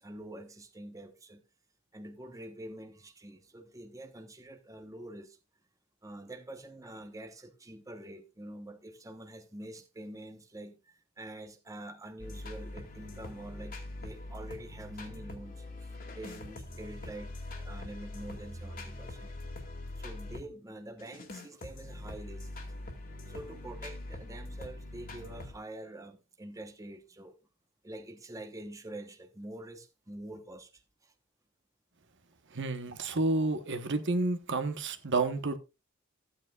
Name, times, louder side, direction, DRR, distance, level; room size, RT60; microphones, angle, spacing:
voice 1, 0.0-1.4 1.9-5.4 6.0-15.9 16.2-19.4 20.0-22.5 23.3-27.3 27.8-31.1, right 1 dB, 15° right, 1.1 m, -46 dB
sound 1, 12.2-20.5 21.0-25.5, left 2 dB, 45° left, 2.3 m, -43 dB
voice 2, 32.5-35.6, right 3 dB, 60° right, 1.2 m, -30 dB
14.5 x 8.9 x 2.4 m
head